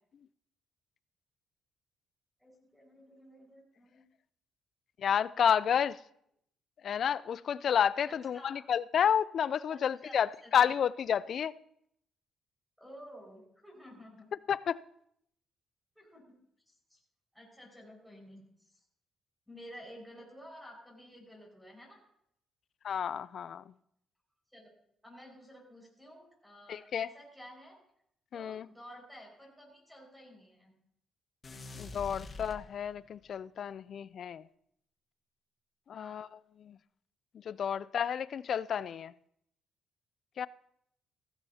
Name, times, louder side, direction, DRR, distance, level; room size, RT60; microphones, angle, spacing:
voice 1, 2.4-4.0 8.1-8.6 9.7-10.8 12.8-14.3 16.0-16.3 16.7-17.0 17.3-18.8 19.5-22.0 24.5-24.7 25.0-27.8 28.3-30.7 35.9-36.2, equal, ahead, 5.3 m, -52 dB
voice 2, 5.0-6.0 6.8-11.5 14.5-14.8 22.8-23.6 26.7-27.1 28.3-28.7 31.8-34.4 35.9-36.3 36.6-36.8 37.5-39.1 40.4-40.5, left 8 dB, 60° left, 0.4 m, -30 dB
sound 1, 31.4-33.2, left 3 dB, 35° left, 1.5 m, -46 dB
16.0 x 14.5 x 2.8 m
cardioid pair, 90°, 0 cm